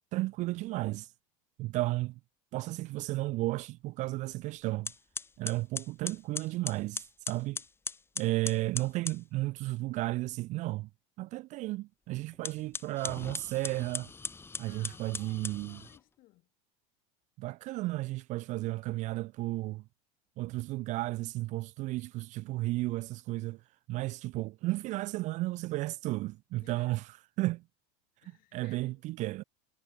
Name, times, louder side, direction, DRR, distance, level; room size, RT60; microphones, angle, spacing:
voice 1, 0.1-1.1 1.6-2.2 2.5-4.9 5.4-7.6 8.2-10.9 11.2-14.1 14.6-15.8 17.4-19.8 20.4-23.6 23.9-27.0 27.4-27.6 28.5-29.4, right 19 dB, 40° right, 0.4 m, -33 dB
sound 1, 4.3-4.5 4.8-9.2 12.3-16.0, left 4 dB, 15° left, 1.0 m, -40 dB
voice 2, 14.7-16.5 26.5-27.0 28.2-29.0, left 18 dB, 50° left, 5.1 m, -60 dB
supercardioid pair, 135°, 18 cm